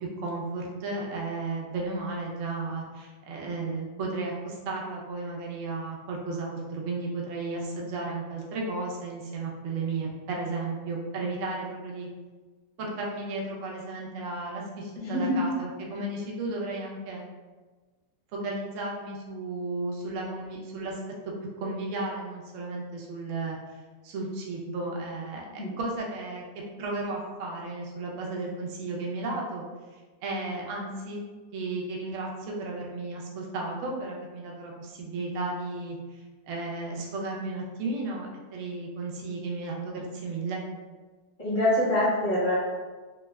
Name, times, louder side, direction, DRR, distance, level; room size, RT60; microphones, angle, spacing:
voice 1, 0.2-12.1 12.8-17.2 18.3-21.0 21.6-23.6 24.0-26.4 26.8-29.6 30.2-31.2 31.5-36.0 36.5-40.6, right 3 dB, 70° right, -2 dB, 0.7 m, -34 dB
voice 2, 14.9-15.4 25.6-25.7 41.4-42.6, left 1 dB, 35° left, -10 dB, 1.1 m, -25 dB
3.2 x 2.2 x 2.2 m, 1.3 s
omnidirectional pair, 1.9 m